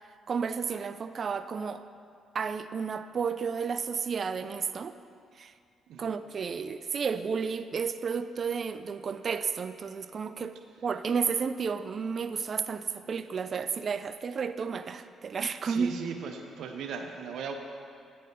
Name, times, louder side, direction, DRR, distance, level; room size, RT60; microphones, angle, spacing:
voice 1, 0.3-1.8 2.3-5.0 5.4-5.5 6.0-15.9, right 6 dB, 45° right, 11 dB, 0.3 m, -32 dB
voice 2, 15.6-17.5, right 5 dB, 75° right, 4 dB, 0.7 m, -38 dB
8.5 x 4.2 x 5.2 m, 2.3 s
cardioid pair, 90°, 0 cm